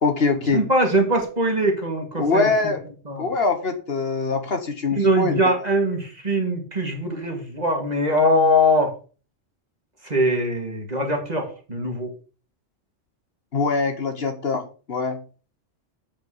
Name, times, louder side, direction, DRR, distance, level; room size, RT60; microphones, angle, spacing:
voice 1, 0.0-0.7 2.2-2.9 3.2-5.5 13.5-15.2, left 4 dB, 55° left, 7 dB, 1.3 m, -23 dB
voice 2, 0.5-2.5 3.1-3.3 4.9-8.9 10.0-12.1, equal, 35° right, 2 dB, 2.3 m, -22 dB
8.1 x 5.1 x 6.4 m, 0.37 s
omnidirectional pair, 1.3 m